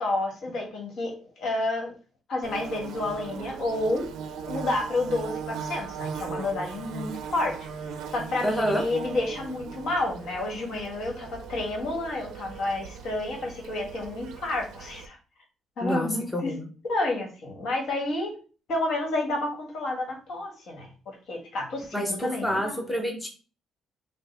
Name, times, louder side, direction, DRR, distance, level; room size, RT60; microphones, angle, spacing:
voice 1, 0.0-1.9 2.3-4.1 4.5-15.2 15.8-16.5 16.8-18.3 18.7-22.8, left 2 dB, 60° left, 0 dB, 1.5 m, -30 dB
Bird / Buzz, 2.4-15.1, right 6 dB, 80° right, 0.5 m, -38 dB
voice 2, 8.4-8.8 15.8-16.7 21.9-23.3, equal, 5° left, 1 dB, 0.6 m, -28 dB
5.3 x 2.0 x 3.2 m, 0.36 s
cardioid pair, 150°, 0 cm